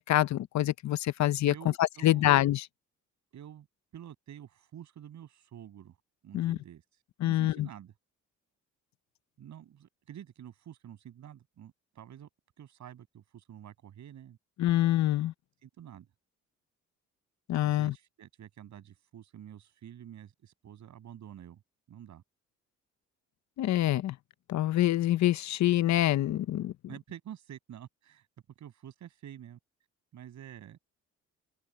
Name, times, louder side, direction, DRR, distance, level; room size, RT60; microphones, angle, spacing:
voice 1, 0.0-2.6 6.3-6.6 7.2-7.7 14.6-15.3 17.5-17.9 23.6-24.1 24.5-26.7, left 14 dB, 65° left, 0.8 m, -26 dB
voice 2, 1.5-2.3 3.3-3.7 3.9-6.0 6.2-7.9 9.4-12.3 12.6-14.4 15.6-16.1 17.6-21.6 21.9-22.2 26.9-28.3 28.6-29.6 30.1-30.8, right 10 dB, 70° right, 6.9 m, -48 dB
open air
cardioid pair, 90°, 30 cm